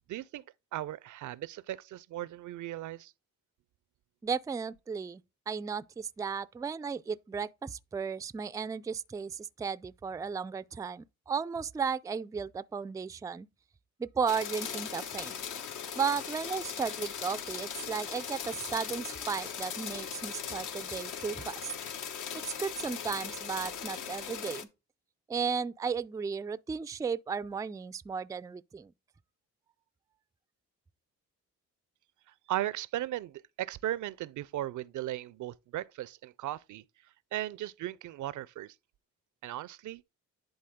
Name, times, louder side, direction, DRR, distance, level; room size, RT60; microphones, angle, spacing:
voice 1, 0.1-0.4 0.7-3.1 32.5-36.8 37.3-38.7 39.4-40.0, right 14 dB, 70° right, 0.5 m, -37 dB
voice 2, 4.2-5.2 5.5-13.5 14.0-15.4 15.9-21.7 22.4-24.7 25.3-28.9, right 6 dB, 10° right, 0.3 m, -35 dB
sound 1, 14.3-24.6, left 7 dB, 70° left, 1.1 m, -39 dB
10.5 x 4.0 x 3.6 m
cardioid pair, 80°, 32 cm